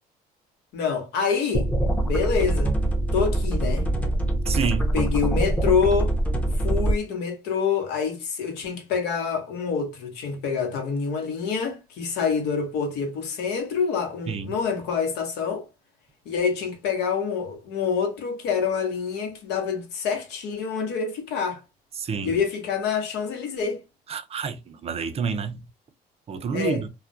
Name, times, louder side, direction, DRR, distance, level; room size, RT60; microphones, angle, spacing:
voice 1, 0.7-1.7 2.0-2.7 3.1-3.9 4.9-6.1 6.6-15.6 16.3-21.6 22.2-23.8 26.3-26.8, left 6 dB, 85° left, 0.9 m, -26 dB
sound 1, 1.5-6.9, right 1 dB, 10° left, 0.6 m, -24 dB
voice 2, 4.5-4.9 14.3-14.5 22.0-22.3 24.1-25.6 26.3-26.9, right 6 dB, 35° right, 0.4 m, -28 dB
2.3 x 2.1 x 2.6 m
cardioid pair, 110°, 17 cm